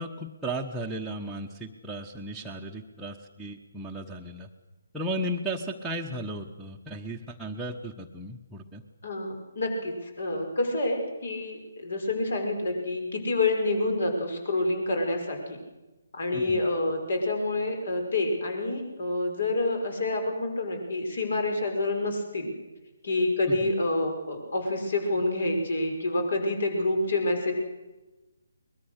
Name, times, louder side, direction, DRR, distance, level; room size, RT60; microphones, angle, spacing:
voice 1, 0.0-4.5 4.9-8.8 16.3-16.6 23.5-23.7, right 1 dB, 5° right, -4 dB, 1.1 m, -35 dB
voice 2, 9.0-15.6 16.1-22.5 23.0-27.5, left 2 dB, 60° left, 4 dB, 5.9 m, -28 dB
23.0 x 21.0 x 6.6 m, 1.1 s
figure-of-eight pair, 145°, 0 cm